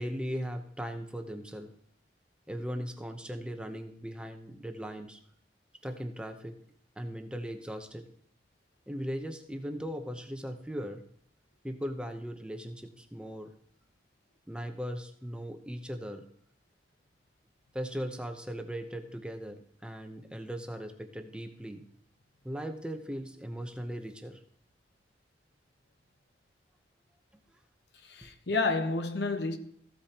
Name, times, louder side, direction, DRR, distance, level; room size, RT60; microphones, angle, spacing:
voice 1, 0.0-1.7 2.5-5.2 5.8-6.6 7.0-8.1 8.9-11.0 11.6-13.5 14.5-16.3 17.7-21.8 22.4-24.4 28.2-28.3, equal, 5° right, 0.8 m, -38 dB
voice 2, 28.1-29.6, left 3 dB, 70° left, 0.9 m, -30 dB
15.0 x 8.5 x 2.9 m
head